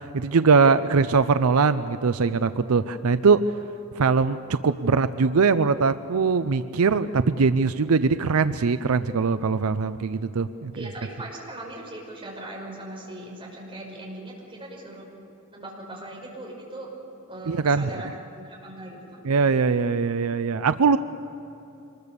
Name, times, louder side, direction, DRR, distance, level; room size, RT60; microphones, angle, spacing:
voice 1, 0.1-3.4 3.9-10.7 17.5-17.9 19.2-21.0, right 5 dB, 80° right, 12 dB, 0.5 m, -21 dB
voice 2, 10.7-15.1 15.5-16.9 17.3-19.3, right 1 dB, 25° right, -2 dB, 5.6 m, -39 dB
25.0 x 21.0 x 6.8 m, 2.9 s
head